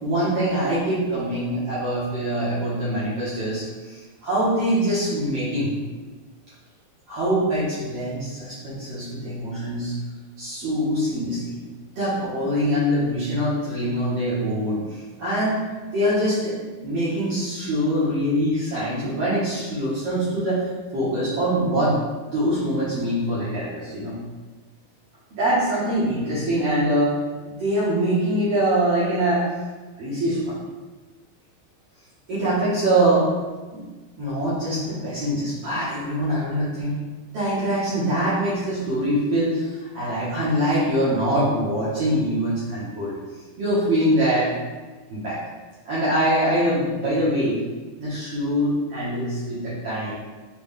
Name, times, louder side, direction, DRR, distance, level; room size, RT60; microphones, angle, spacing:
voice 1, 0.0-5.7 7.1-9.9 10.4-11.6 12.0-15.6 15.9-16.5 16.8-20.6 20.9-22.0 22.3-24.2 25.3-29.5 30.0-30.5 32.3-33.3 33.7-33.8 34.2-37.0 37.3-43.1 43.6-44.5 45.1-45.4 45.8-47.6 48.0-50.1, right 1 dB, 65° right, -11 dB, 1.6 m, -23 dB
5.9 x 2.3 x 3.5 m, 1.3 s
omnidirectional pair, 4.2 m